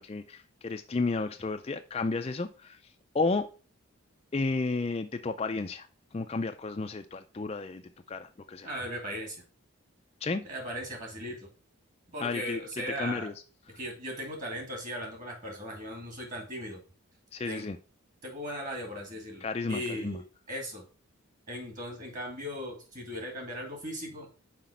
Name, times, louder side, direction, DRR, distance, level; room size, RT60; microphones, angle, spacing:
voice 1, 0.0-2.8 3.1-3.5 4.3-5.9 6.1-7.8 8.1-8.7 10.2-10.4 12.2-12.6 13.0-13.3 17.3-17.8 19.4-20.2, left 3 dB, 25° left, 0.4 m, -32 dB
voice 2, 8.6-9.4 10.4-11.5 12.1-13.3 13.8-16.8 17.5-17.7 18.2-20.9 21.5-24.3, equal, 35° right, 2.2 m, -38 dB
5.9 x 5.0 x 5.0 m
head